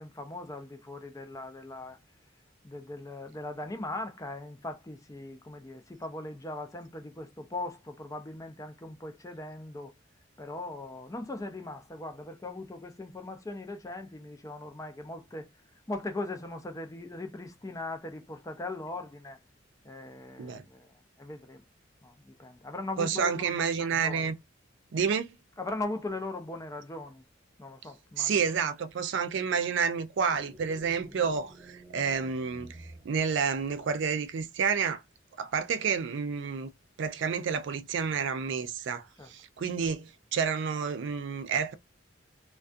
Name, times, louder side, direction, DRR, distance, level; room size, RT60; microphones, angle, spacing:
voice 1, 0.0-2.0 2.6-9.9 10.4-15.5 15.9-19.4 19.8-21.6 22.0-24.3 25.6-27.2 27.6-28.3 39.2-39.3, left 2 dB, 15° left, 0.4 m, -39 dB
voice 2, 23.0-24.4 24.9-25.3 28.2-35.0 35.4-36.7 37.0-41.7, right 6 dB, 65° right, 0.4 m, -30 dB
sound 1, 30.2-33.9, right 1 dB, 25° right, 0.8 m, -51 dB
2.3 x 2.2 x 2.5 m
head